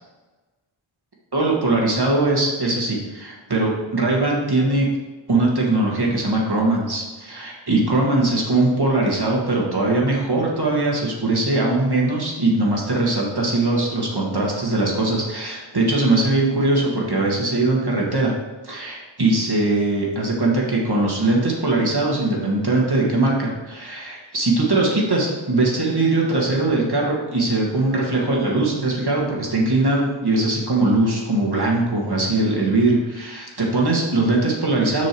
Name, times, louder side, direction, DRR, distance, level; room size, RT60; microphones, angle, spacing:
voice 1, 1.3-4.9 5.3-18.3 18.6-35.1, right 2 dB, 50° right, -2 dB, 2.0 m, -21 dB
6.5 x 6.1 x 4.6 m, 1.2 s
wide cardioid pair, 50°, 48 cm